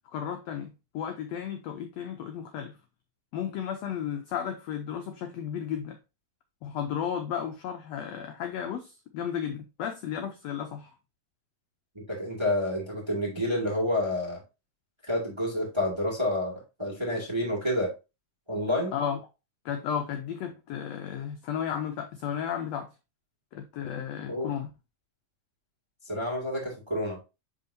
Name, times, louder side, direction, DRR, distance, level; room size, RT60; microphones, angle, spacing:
voice 1, 0.1-2.8 3.3-6.0 6.6-10.9 18.9-19.2 19.6-22.9 23.5-24.7, left 8 dB, 80° left, 1.5 m, -34 dB
voice 2, 12.1-14.4 15.1-17.9 18.5-18.9 24.3-24.5 26.0-27.2, left 1 dB, 10° right, 1.4 m, -29 dB
10.5 x 3.7 x 2.7 m
omnidirectional pair, 3.9 m